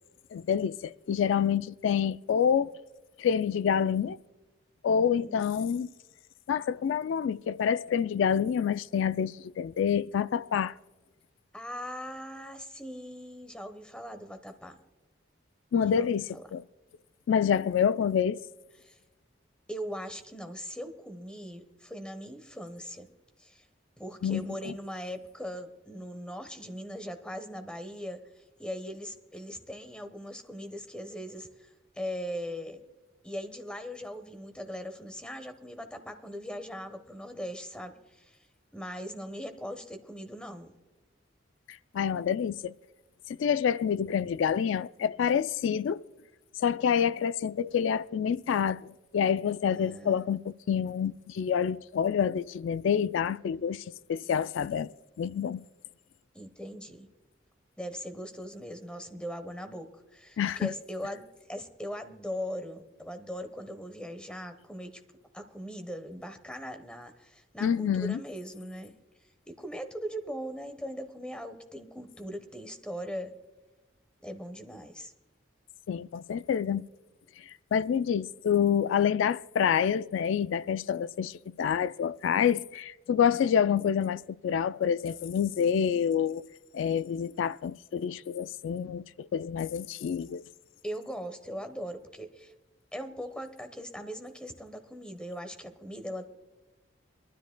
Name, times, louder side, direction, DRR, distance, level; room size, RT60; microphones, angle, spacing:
voice 1, 0.3-2.7 3.2-4.2 4.8-5.9 6.5-10.7 15.7-16.6 17.3-18.4 24.2-24.7 41.7-42.7 43.4-46.0 46.6-48.9 49.1-54.9 55.2-55.6 60.4-60.7 67.6-68.2 75.9-76.8 77.4-86.4 86.7-90.4, left 8 dB, 75° left, 0.3 m, -27 dB
voice 2, 11.5-14.8 15.9-16.4 18.8-19.0 19.7-23.1 23.4-23.7 24.0-32.8 33.2-38.5 38.7-40.7 49.6-50.2 56.3-57.1 57.8-64.9 65.3-68.9 69.5-73.3 74.2-75.1 90.8-92.5 92.9-96.3, equal, 5° left, 1.0 m, -40 dB
23.5 x 13.0 x 2.2 m
head